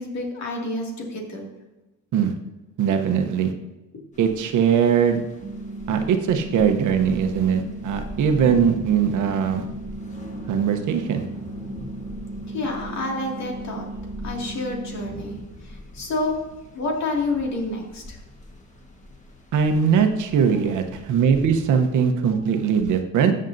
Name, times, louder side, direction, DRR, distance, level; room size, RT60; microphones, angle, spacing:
voice 1, 0.0-1.5 12.5-13.9 14.2-16.4 16.7-18.2, left 2 dB, 60° left, -1 dB, 2.4 m, -29 dB
voice 2, 2.8-3.5 4.2-5.2 5.9-9.6 10.5-11.2 19.5-23.3, right 7 dB, 70° right, 6 dB, 1.0 m, -20 dB
sound 1, 4.1-21.9, left 1 dB, 25° left, 1.5 m, -42 dB
sound 2, 5.4-15.4, right 2 dB, 30° right, 0.6 m, -36 dB
13.0 x 6.5 x 2.7 m, 1.0 s
cardioid pair, 100°, 31 cm